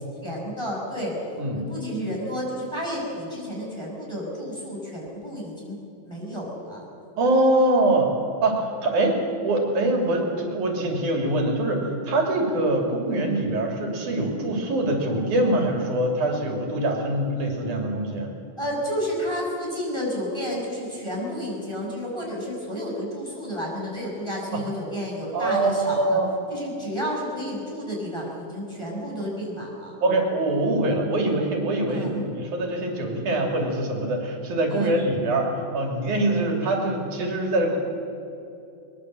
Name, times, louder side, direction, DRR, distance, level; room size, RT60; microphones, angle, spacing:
voice 1, 0.2-1.1 1.6-5.8 6.0-6.9 18.6-26.2 26.5-30.0 31.9-32.2 34.7-34.9, equal, 10° left, -3 dB, 5.8 m, -31 dB
voice 2, 7.2-8.1 8.4-18.3 24.5-24.6 25.3-26.3 30.0-37.8, right 1 dB, 75° right, 2 dB, 4.2 m, -24 dB
22.0 x 22.0 x 7.6 m, 2.7 s
omnidirectional pair, 3.5 m